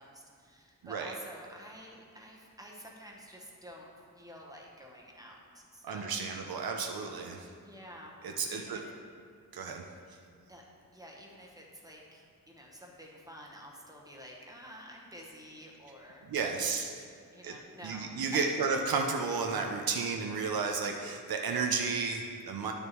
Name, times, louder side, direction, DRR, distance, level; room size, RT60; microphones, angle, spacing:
voice 1, 0.0-3.9 4.1-6.2 7.6-8.2 8.5-8.8 10.5-10.6 10.9-16.2 17.3-18.5, equal, 10° right, -2 dB, 1.0 m, -50 dB
voice 2, 0.8-1.1 5.8-7.5 8.2-8.8 9.5-9.8 10.1-10.2 16.2-17.0 17.4-17.6 17.8-22.7, right 4 dB, 85° right, 3 dB, 0.6 m, -32 dB
10.5 x 6.6 x 3.0 m, 2.1 s
wide cardioid pair, 160°, 35 cm